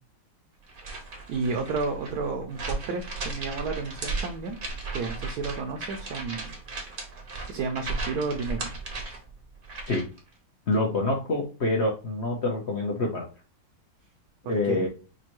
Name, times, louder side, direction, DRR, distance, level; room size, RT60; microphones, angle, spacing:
sound 1, 0.7-10.2, right 3 dB, 50° right, 0.6 m, -36 dB
voice 1, 1.3-4.6 4.9-7.1 7.5-8.7 14.4-14.9, right 4 dB, 70° right, 3 dB, 0.9 m, -32 dB
voice 2, 10.7-13.3 14.5-14.9, left 2 dB, 70° left, -1 dB, 0.6 m, -26 dB
5.4 x 2.2 x 3.0 m, 0.32 s
omnidirectional pair, 2.3 m